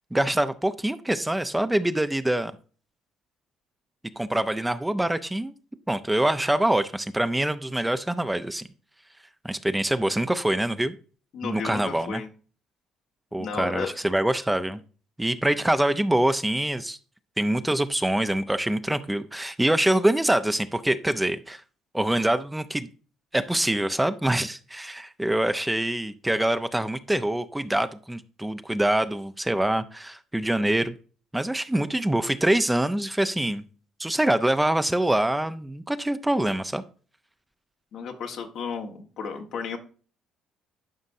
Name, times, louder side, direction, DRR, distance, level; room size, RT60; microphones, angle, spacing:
voice 1, 0.1-2.5 4.2-5.5 5.9-8.6 9.4-10.9 11.4-12.2 13.3-14.8 15.2-17.0 17.4-21.6 21.9-22.9 23.3-30.9 31.3-33.6 34.0-36.8, right 1 dB, 10° right, 0.6 m, -25 dB
voice 2, 11.3-12.3 13.4-14.0 37.9-39.8, left 5 dB, 70° left, 1.5 m, -33 dB
11.5 x 5.2 x 2.7 m
supercardioid pair, 65°, 0 cm